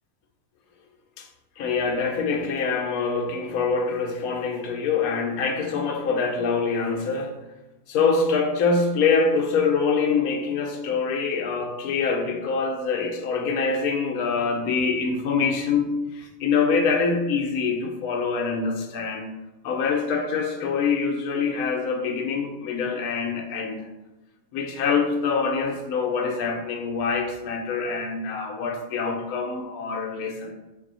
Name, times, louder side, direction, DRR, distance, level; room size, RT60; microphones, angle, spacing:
voice 1, 1.6-7.4 7.9-19.3 19.6-23.8 24.5-30.5, left 5 dB, 85° left, 1.1 m, -25 dB
3.6 x 2.7 x 3.9 m
omnidirectional pair, 1.5 m